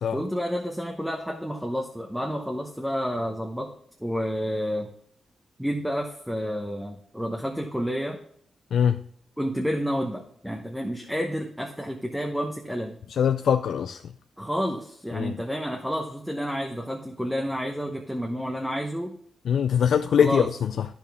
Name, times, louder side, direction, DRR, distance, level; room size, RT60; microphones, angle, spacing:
voice 1, 0.1-3.7 4.0-4.9 5.6-8.2 9.4-13.0 14.4-19.2 20.2-20.5, equal, ahead, 0.9 m, -30 dB
voice 2, 13.2-14.0 15.1-15.4 19.5-20.9, left 8 dB, 75° left, 0.4 m, -22 dB
9.9 x 7.0 x 3.5 m
cardioid pair, 110°, 0 cm